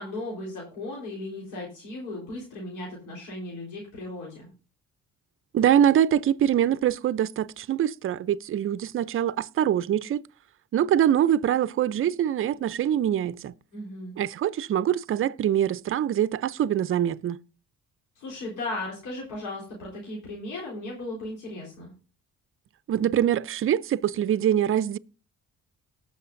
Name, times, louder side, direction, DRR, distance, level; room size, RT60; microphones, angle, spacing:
voice 1, 0.0-4.5 13.7-14.1 18.2-21.9, left 2 dB, 85° left, 4.1 m, -36 dB
voice 2, 5.5-10.2 10.7-13.5 14.2-17.4 22.9-25.0, right 10 dB, 45° right, 0.5 m, -24 dB
19.0 x 6.5 x 2.6 m
cardioid pair, 90°, 30 cm